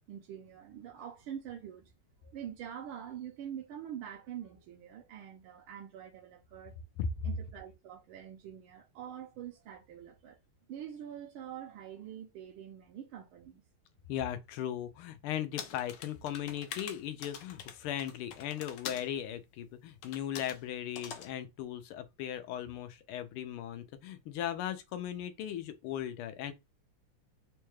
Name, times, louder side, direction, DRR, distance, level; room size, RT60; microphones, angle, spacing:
voice 1, 0.1-1.9 2.2-6.8 7.2-10.4 10.7-13.6, right 9 dB, 80° right, 1.5 m, -45 dB
voice 2, 14.1-26.5, left 10 dB, 85° left, 1.5 m, -37 dB
sound 1, 15.6-19.1 20.0-20.6 21.0-21.3, left 8 dB, 70° left, 1.1 m, -44 dB
4.3 x 2.2 x 3.1 m
omnidirectional pair, 2.4 m